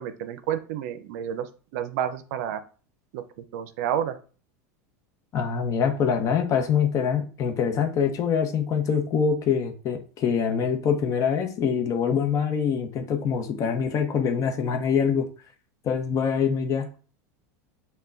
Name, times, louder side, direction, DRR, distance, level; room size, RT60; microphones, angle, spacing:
voice 1, 0.0-1.5 1.7-2.6 3.1-3.2 3.5-4.1, right 9 dB, 70° right, 11 dB, 0.5 m, -29 dB
voice 2, 5.3-15.3 15.8-16.9, left 7 dB, 40° left, 5 dB, 0.8 m, -24 dB
5.4 x 2.2 x 2.5 m, 0.38 s
supercardioid pair, 110°, 9 cm